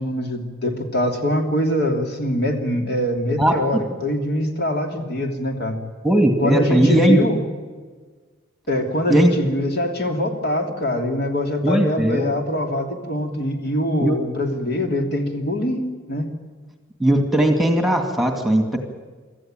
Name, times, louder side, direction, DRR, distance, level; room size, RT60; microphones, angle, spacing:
voice 1, 0.0-5.8 6.4-7.4 8.7-16.3, left 1 dB, 55° left, 4 dB, 3.0 m, -23 dB
voice 2, 3.4-3.8 6.0-7.2 9.1-9.3 11.6-12.3 14.0-14.2 17.0-18.8, right 1 dB, ahead, 4 dB, 2.3 m, -18 dB
25.5 x 14.5 x 9.1 m, 1.4 s
head